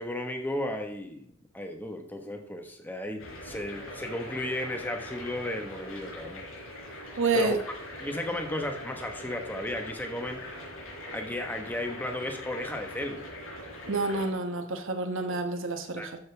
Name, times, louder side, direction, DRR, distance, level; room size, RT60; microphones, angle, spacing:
voice 1, 0.0-6.4 7.3-7.5 8.0-10.4 11.1-13.2 16.0-16.1, left 1 dB, 10° left, 4 dB, 1.3 m, -34 dB
sound 1, 3.2-14.3, left 1 dB, 70° left, 4.8 m, -42 dB
voice 2, 7.2-7.6 13.9-16.2, right 3 dB, 60° right, 6 dB, 1.1 m, -28 dB
13.5 x 6.7 x 3.5 m, 0.66 s
head